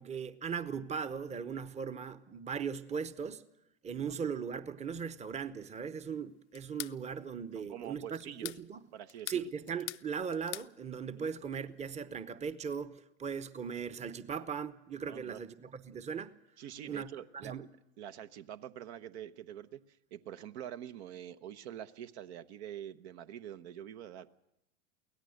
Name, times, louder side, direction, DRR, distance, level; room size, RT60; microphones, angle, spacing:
voice 1, 0.0-3.5 3.8-8.8 9.3-16.3 16.8-17.1 17.4-17.6, right 6 dB, 20° right, 0.9 m, -38 dB
sound 1, 6.5-7.0 8.2-8.6 9.1-10.1 10.3-10.7, left 18 dB, 75° left, 0.6 m, -42 dB
voice 2, 7.5-8.5 8.9-9.5 11.2-11.3 15.1-15.4 16.6-17.5 18.0-19.8 20.1-24.3, right 10 dB, 65° right, 1.0 m, -45 dB
23.5 x 17.0 x 6.5 m
hypercardioid pair, 100°, 35 cm